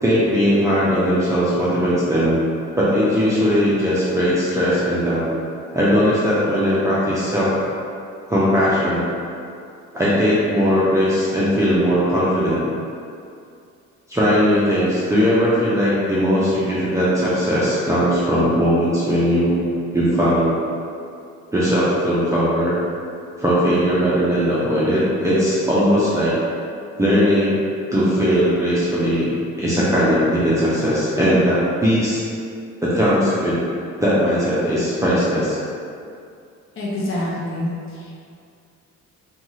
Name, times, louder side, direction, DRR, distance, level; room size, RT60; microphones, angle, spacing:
voice 1, 0.0-2.3 2.8-5.3 5.7-7.7 8.3-9.0 9.9-12.6 14.1-19.6 19.9-20.5 21.5-22.8 23.4-26.3 27.0-27.6 27.9-32.2 32.8-33.6 34.0-35.6, equal, 10° right, -10 dB, 0.5 m, -19 dB
voice 2, 36.7-38.1, left 1 dB, 45° left, -6 dB, 0.7 m, -26 dB
2.5 x 2.4 x 3.0 m, 2.4 s
cardioid pair, 90°, 30 cm